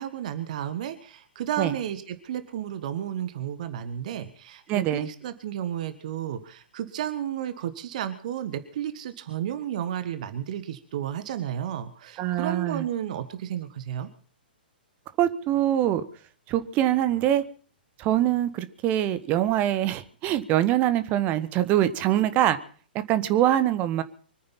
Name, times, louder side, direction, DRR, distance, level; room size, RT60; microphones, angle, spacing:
voice 1, 0.0-14.1, right 10 dB, 45° right, 12 dB, 1.4 m, -32 dB
voice 2, 4.7-5.1 12.2-12.8 15.2-16.0 16.5-17.4 18.0-22.6 23.1-24.0, right 12 dB, 25° right, 13 dB, 1.3 m, -23 dB
25.0 x 9.4 x 5.8 m, 0.43 s
figure-of-eight pair, 115°, 5 cm